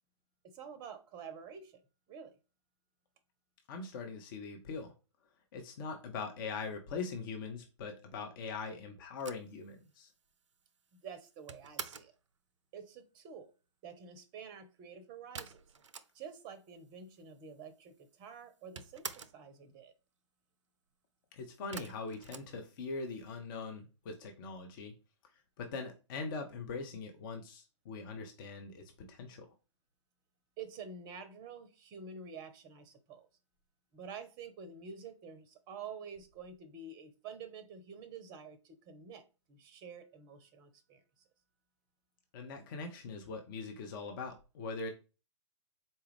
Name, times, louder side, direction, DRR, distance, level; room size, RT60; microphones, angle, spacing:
voice 1, 0.4-1.8 2.1-2.4 11.0-12.1 12.7-13.5 13.8-15.6 16.1-19.9 30.6-33.3 33.9-39.2 39.5-41.0, right 6 dB, 25° right, 11 dB, 0.6 m, -48 dB
voice 2, 3.7-4.9 5.5-10.1 21.3-24.9 25.6-29.5 42.3-44.9, left 4 dB, 45° left, 4 dB, 0.7 m, -42 dB
sound 1, 9.2-12.2 15.3-16.5 16.8-16.9 17.1-17.9 18.1-19.5 21.7-23.2, right 6 dB, 75° right, 0.4 m, -47 dB
4.1 x 2.3 x 3.2 m, 0.31 s
figure-of-eight pair, 115°, 16 cm